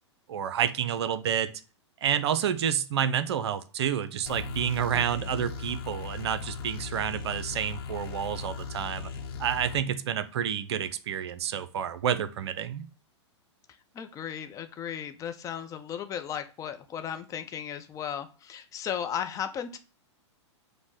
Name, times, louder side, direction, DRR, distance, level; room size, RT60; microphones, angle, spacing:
voice 1, 0.3-1.5 2.0-9.1 9.4-12.9, right 9 dB, 60° right, 12 dB, 0.5 m, -29 dB
sound 1, 4.3-9.8, left 5 dB, 50° left, 0.9 m, -38 dB
voice 2, 4.9-5.5 13.9-19.8, left 8 dB, 20° left, 7 dB, 0.5 m, -36 dB
5.1 x 2.1 x 4.7 m, 0.34 s
figure-of-eight pair, 105°, 15 cm